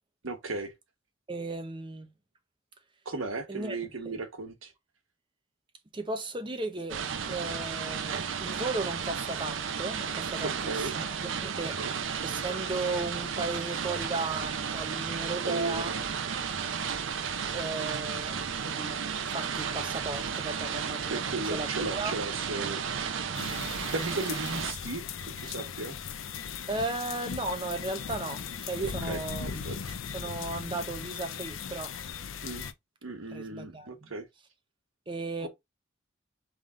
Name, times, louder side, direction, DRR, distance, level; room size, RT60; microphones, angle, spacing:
voice 1, 0.2-0.7 3.0-4.7 10.6-11.0 11.8-11.9 15.4-16.0 21.1-22.8 23.9-26.0 29.1-29.2 29.5-29.8 32.4-32.6 33.0-34.3 35.4-35.5, right 3 dB, 90° right, 1.2 m, -36 dB
voice 2, 1.3-2.1 3.5-3.8 4.0-4.2 5.9-11.8 12.2-15.9 17.5-19.0 19.3-22.1 26.7-29.8 30.1-31.9 33.3-34.1 35.1-35.5, right 2 dB, 25° right, 0.7 m, -35 dB
sound 1, 6.9-24.7, right 6 dB, 75° right, 0.6 m, -33 dB
sound 2, 23.3-32.7, left 7 dB, 80° left, 0.5 m, -38 dB
3.7 x 3.5 x 3.7 m
head